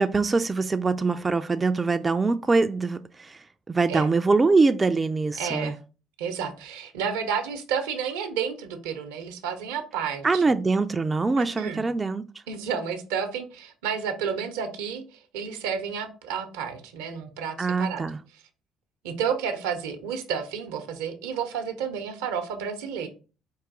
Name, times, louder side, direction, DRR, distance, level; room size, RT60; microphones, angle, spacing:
voice 1, 0.0-5.7 10.2-12.2 17.6-18.2, right 3 dB, 25° right, 0.3 m, -23 dB
voice 2, 5.4-5.8 6.2-10.4 11.4-11.8 12.5-18.1 19.0-23.1, right 7 dB, 80° right, 0.7 m, -31 dB
4.8 x 2.6 x 3.6 m
hypercardioid pair, 55°, 0 cm